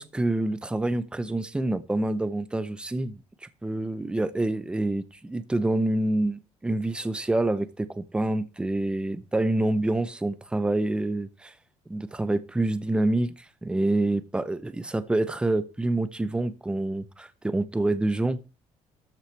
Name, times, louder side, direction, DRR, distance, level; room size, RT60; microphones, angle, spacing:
voice 1, 0.0-3.2 3.6-11.5 11.9-13.3 13.6-18.4, right 2 dB, 10° right, 0.6 m, -27 dB
13.0 x 6.0 x 3.3 m
cardioid pair, 135°, 11 cm